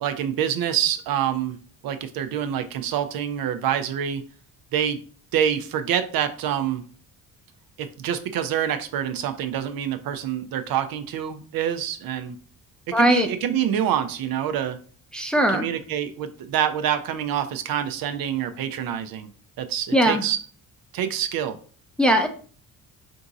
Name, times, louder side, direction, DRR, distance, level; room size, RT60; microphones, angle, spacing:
voice 1, 0.0-1.6 1.8-4.2 4.7-5.0 5.3-6.8 7.8-12.4 12.9-14.8 15.5-19.3 19.6-20.4 20.9-21.6, right 9 dB, 70° right, 9 dB, 0.6 m, -26 dB
voice 2, 12.9-13.3 15.1-15.7 19.9-20.2 22.0-22.3, equal, ahead, 4 dB, 0.5 m, -19 dB
3.6 x 2.6 x 4.0 m, 0.42 s
cardioid pair, 105°, 36 cm